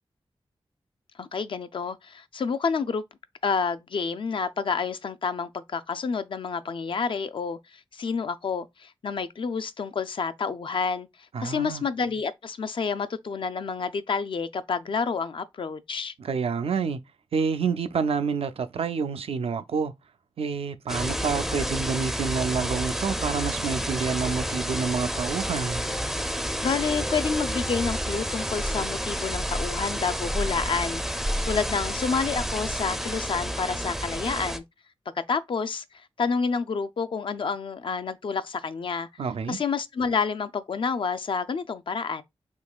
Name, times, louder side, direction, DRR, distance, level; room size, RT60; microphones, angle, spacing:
voice 1, 1.2-3.0 3.4-11.1 11.4-16.1 26.6-31.0 31.4-34.6 35.3-35.8 36.2-39.1 39.5-42.2, left 5 dB, 60° left, 0.4 m, -29 dB
voice 2, 11.3-11.8 16.2-17.0 17.3-19.9 20.4-25.8 39.2-39.6, right 5 dB, 80° right, 0.4 m, -28 dB
sound 1, 20.9-34.6, equal, 5° right, 0.4 m, -30 dB
3.6 x 2.9 x 2.3 m
wide cardioid pair, 80°, 10 cm